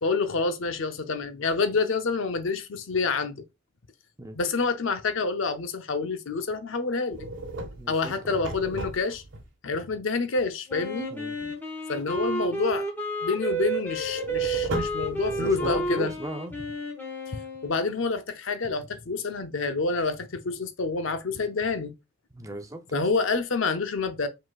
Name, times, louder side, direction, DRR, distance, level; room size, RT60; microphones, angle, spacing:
voice 1, 0.0-3.4 4.4-7.3 7.9-9.2 9.6-11.1 11.9-12.9 13.2-16.1 17.3-21.9 22.9-24.3, left 4 dB, 70° left, 0.6 m, -28 dB
sound 1, 7.1-9.4 13.9-16.2, right 2 dB, 65° right, 1.1 m, -35 dB
voice 2, 7.8-8.4 11.1-11.5 15.4-16.5 22.3-23.1, right 1 dB, 15° right, 0.5 m, -37 dB
Wind instrument woodwind instrument, 10.7-17.8, right 2 dB, 10° left, 1.1 m, -31 dB
5.0 x 3.9 x 2.3 m
head